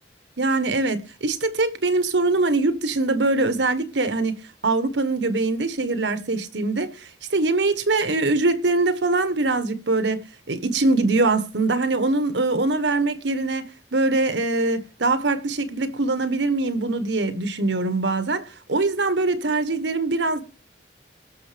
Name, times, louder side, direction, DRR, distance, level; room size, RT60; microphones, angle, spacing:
voice 1, 0.4-4.4 4.6-20.4, right 3 dB, 75° right, 1.4 m, -23 dB
19.0 x 6.7 x 5.2 m
head